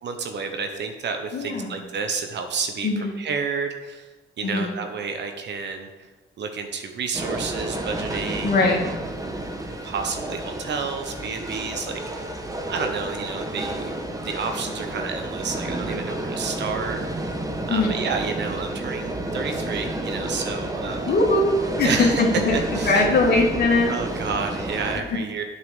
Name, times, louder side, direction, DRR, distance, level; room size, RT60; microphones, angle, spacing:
voice 1, 0.0-4.1 4.4-5.9 6.4-8.5 9.8-12.3 12.7-13.9 14.2-17.4 17.7-21.1 21.8-22.2 22.5-23.0 23.9-25.4, right 5 dB, 65° right, 5 dB, 1.1 m, -30 dB
voice 2, 1.3-1.8 2.8-3.2 4.4-4.8 8.4-8.8 17.7-18.1 21.1-21.4 21.8-22.6 22.8-24.0 25.1-25.2, left 3 dB, 55° left, -2 dB, 1.9 m, -21 dB
sound 1, 7.1-25.0, right 1 dB, 15° right, 1.2 m, -30 dB
7.8 x 5.7 x 7.4 m, 1.2 s
cardioid pair, 90°, 20 cm